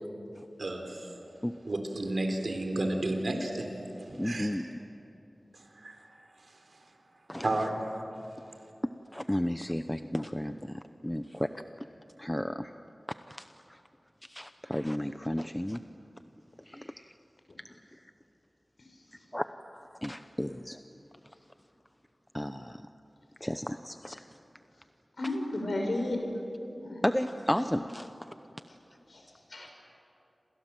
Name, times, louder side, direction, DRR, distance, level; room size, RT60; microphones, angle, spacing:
voice 1, 0.6-1.1 1.7-3.7 4.0-4.5 5.5-6.0 6.5-6.8 7.4-8.0, right 1 dB, 70° right, 4 dB, 3.7 m, -32 dB
voice 2, 4.2-4.7 7.3-7.5 9.1-11.5 12.2-12.7 13.3-13.8 14.3-15.8 16.7-17.1 19.3-19.4 20.0-20.8 22.3-22.8 23.4-24.2 27.0-28.1, left 1 dB, 10° left, 9 dB, 0.7 m, -33 dB
voice 3, 25.2-26.2 26.8-27.0 29.1-29.7, left 1 dB, 75° left, 2 dB, 5.8 m, -33 dB
28.5 x 27.0 x 7.6 m, 2.9 s
wide cardioid pair, 70°, 0 cm